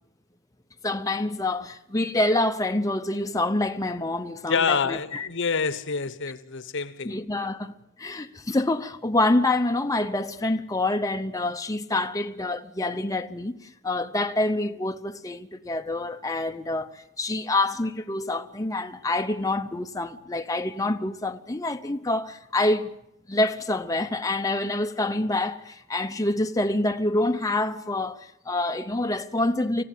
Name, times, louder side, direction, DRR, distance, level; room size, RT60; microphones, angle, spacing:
voice 1, 0.8-5.3 7.0-13.6 13.8-22.9 23.3-29.8, left 2 dB, 15° left, 0.8 m, -26 dB
voice 2, 4.5-7.5, left 5 dB, 60° left, 1.2 m, -27 dB
25.0 x 15.5 x 9.2 m
head